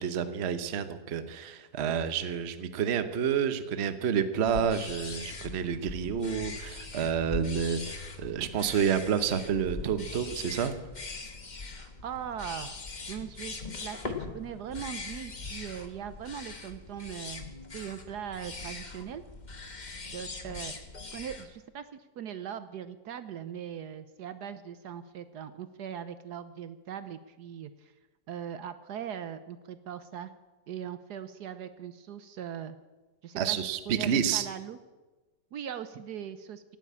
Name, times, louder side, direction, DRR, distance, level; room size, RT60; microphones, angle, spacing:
voice 1, 0.0-10.7 33.4-34.5, right 7 dB, 45° right, 11 dB, 1.0 m, -29 dB
sound 1, 4.5-21.5, left 3 dB, 25° left, 1.3 m, -41 dB
voice 2, 11.8-12.8 13.1-17.4 17.7-19.2 20.1-20.7 21.1-27.9 28.3-30.3 30.7-32.8 33.2-33.6 33.9-34.8 35.5-36.6, right 9 dB, 70° right, 12 dB, 1.2 m, -40 dB
17.0 x 9.2 x 8.6 m, 1.2 s
omnidirectional pair, 1.9 m